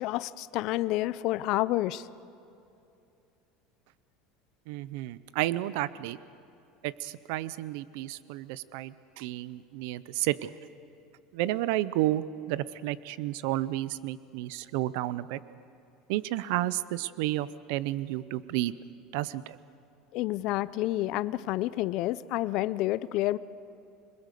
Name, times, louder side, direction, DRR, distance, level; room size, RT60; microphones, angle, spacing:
voice 1, 0.0-2.1 20.1-23.4, left 16 dB, 45° left, 16 dB, 0.5 m, -29 dB
voice 2, 4.7-6.2 6.8-10.5 11.3-15.4 16.1-18.7 19.1-19.6, right 15 dB, 65° right, 17 dB, 0.5 m, -31 dB
27.0 x 20.5 x 6.8 m, 2.7 s
cardioid pair, 175°, 0 cm